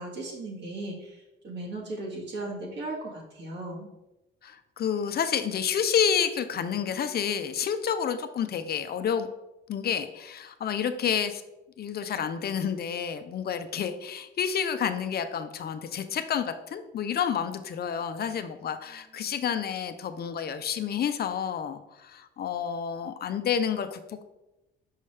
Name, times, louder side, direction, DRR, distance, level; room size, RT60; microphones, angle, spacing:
voice 1, 0.0-3.9 19.0-19.2, right 2 dB, 60° right, -3 dB, 1.9 m, -37 dB
voice 2, 4.4-9.3 9.7-11.4 11.8-24.2, left 8 dB, 50° left, 9 dB, 0.6 m, -29 dB
5.5 x 5.3 x 3.3 m, 0.96 s
cardioid pair, 90°, 20 cm